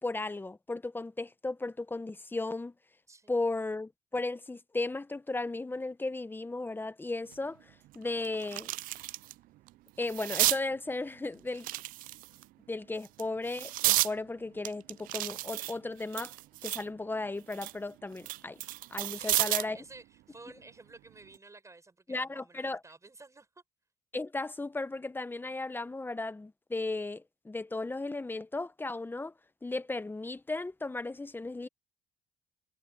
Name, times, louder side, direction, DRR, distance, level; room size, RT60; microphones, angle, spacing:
voice 1, 0.0-2.7 3.3-8.7 10.0-11.7 12.7-16.3 16.6-18.6 18.9-19.8 22.1-22.8 24.1-29.3 29.6-31.7, left 2 dB, 15° left, 1.0 m, -35 dB
sound 1, 7.3-7.4 7.9-9.3 9.7-10.6 11.5-12.4 13.0-14.1 14.6-16.9 17.3-19.8 21.1-21.3, right 18 dB, 75° right, 0.4 m, -32 dB
voice 2, 19.0-23.6, right 3 dB, 20° right, 7.5 m, -53 dB
supercardioid pair, 85°, 14 cm